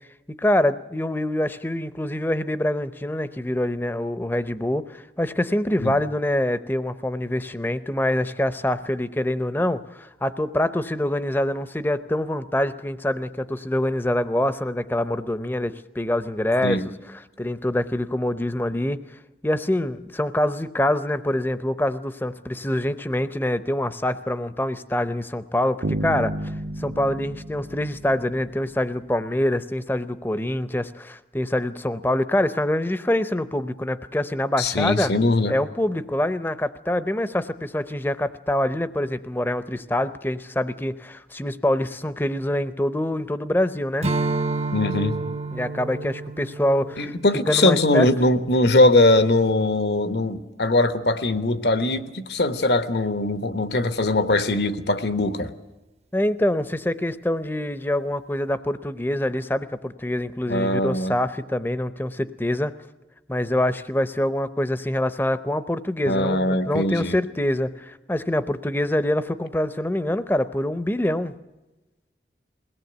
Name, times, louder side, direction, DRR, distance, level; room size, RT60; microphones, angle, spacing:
voice 1, 0.3-16.8 17.1-19.0 19.4-35.1 35.5-44.1 45.5-47.1 47.5-48.1 56.1-62.7 63.3-71.3, left 1 dB, 10° left, 13 dB, 0.6 m, -25 dB
sound 1, 25.8-28.9, right 1 dB, 75° right, 1.1 m, -31 dB
voice 2, 34.6-35.5 44.7-45.1 47.0-55.5 60.5-61.2 66.0-67.2, left 2 dB, 75° left, 11 dB, 1.2 m, -21 dB
Strum, 44.0-48.7, right 3 dB, 35° right, 0.7 m, -30 dB
21.5 x 17.5 x 8.0 m, 1.1 s
head